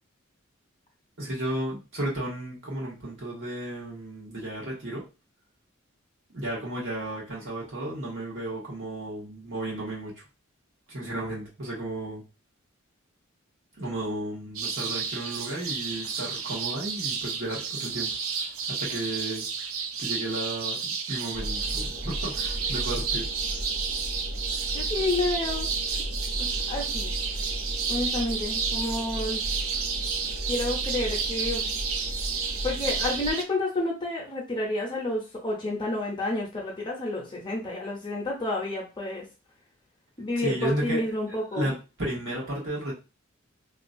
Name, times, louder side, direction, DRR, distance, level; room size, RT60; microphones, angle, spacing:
voice 1, 1.2-5.0 6.3-10.1 10.9-12.2 13.8-18.1 18.7-19.5 20.0-23.3 40.3-41.0 41.3-42.9, right 1 dB, 65° right, -4 dB, 1.5 m, -33 dB
sound 1, 14.5-33.4, right 6 dB, 80° right, 0.5 m, -31 dB
sound 2, 21.3-33.3, equal, 35° right, 0.8 m, -35 dB
voice 2, 24.7-25.7 26.4-27.1 27.9-29.4 30.5-31.8 32.6-39.2 40.2-41.7, left 2 dB, 25° left, -1 dB, 0.6 m, -30 dB
3.0 x 2.3 x 2.6 m, 0.30 s
head